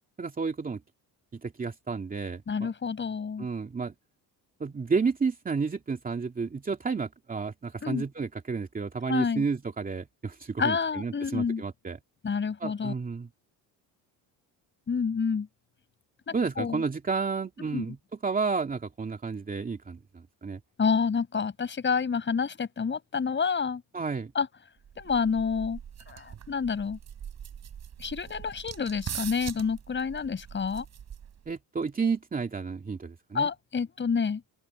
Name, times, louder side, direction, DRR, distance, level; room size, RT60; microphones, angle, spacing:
voice 1, 0.2-0.8 1.3-2.7 3.4-3.9 4.6-12.0 12.6-13.3 16.3-18.0 18.2-20.6 23.9-24.3 31.5-33.5, right 5 dB, 20° right, 2.6 m, -31 dB
voice 2, 2.5-3.5 7.8-8.0 9.1-9.4 10.6-11.6 12.2-12.9 14.9-15.5 16.3-16.8 17.7-17.8 20.8-23.8 24.3-24.5 25.0-25.8 26.1-27.0 28.0-30.8 33.3-34.4, left 5 dB, 30° left, 6.1 m, -28 dB
sound 1, 24.8-31.5, right 9 dB, 40° right, 5.7 m, -42 dB
open air
cardioid pair, 140°, 39 cm